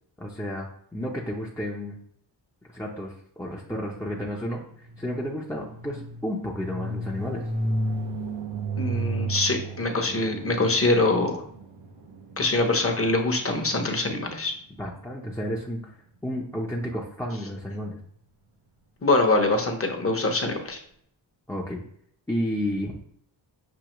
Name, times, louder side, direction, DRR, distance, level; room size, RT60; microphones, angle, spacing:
voice 1, 0.2-2.0 2.7-7.5 14.8-15.8 16.2-18.0 21.5-21.8 22.3-23.0, equal, 5° left, -3 dB, 0.6 m, -32 dB
sound 1, 4.3-14.2, right 2 dB, 90° right, 0.8 m, -33 dB
voice 2, 8.8-11.4 12.4-14.5 19.0-20.8, left 2 dB, 30° left, 4 dB, 0.9 m, -24 dB
6.3 x 2.7 x 3.0 m, 0.66 s
wide cardioid pair, 75°, 45 cm